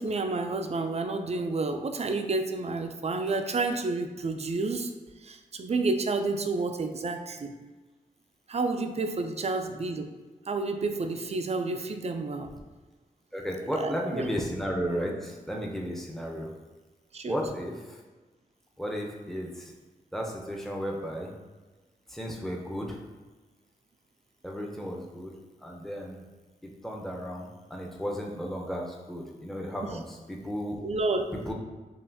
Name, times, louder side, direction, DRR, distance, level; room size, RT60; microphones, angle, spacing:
voice 1, 0.0-4.9 5.2-7.5 8.5-10.1 10.5-12.5 13.8-14.3 17.1-17.4 29.8-29.9 30.8-31.3, right 3 dB, 45° right, 6 dB, 0.4 m, -30 dB
voice 2, 13.3-16.5 17.3-18.0 18.8-19.7 20.1-21.3 22.1-23.0 24.4-25.4 25.6-26.2 26.6-30.8 31.5-31.6, equal, ahead, -1 dB, 0.7 m, -34 dB
5.4 x 2.5 x 2.7 m, 1.3 s
cardioid pair, 60°, 16 cm